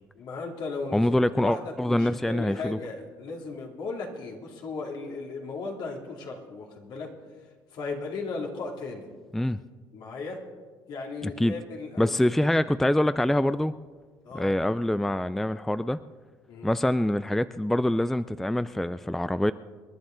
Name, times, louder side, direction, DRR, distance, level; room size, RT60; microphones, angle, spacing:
voice 1, 0.1-7.1 7.7-9.1 9.9-10.4 10.9-12.2 14.2-14.5 16.5-16.7, left 3 dB, 65° left, 0 dB, 2.7 m, -36 dB
voice 2, 0.9-2.8 9.3-9.6 11.2-11.5 12.0-13.7 14.3-16.0 16.6-19.5, left 1 dB, 5° left, 14 dB, 0.3 m, -25 dB
27.5 x 10.5 x 3.9 m, 1.5 s
cardioid pair, 95°, 8 cm